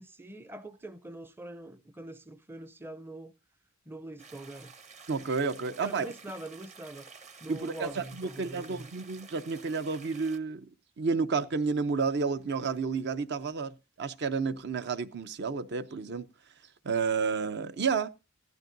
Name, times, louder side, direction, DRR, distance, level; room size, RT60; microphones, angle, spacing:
voice 1, 0.0-3.3 3.9-4.7 5.8-7.1 7.4-8.9, right 2 dB, 10° right, 0.5 m, -43 dB
sound 1, 4.2-10.4, right 5 dB, 35° right, 1.0 m, -51 dB
voice 2, 5.1-6.1 7.5-10.7 11.0-16.2 16.8-18.1, right 5 dB, 55° right, 0.6 m, -31 dB
15.5 x 12.0 x 2.6 m
head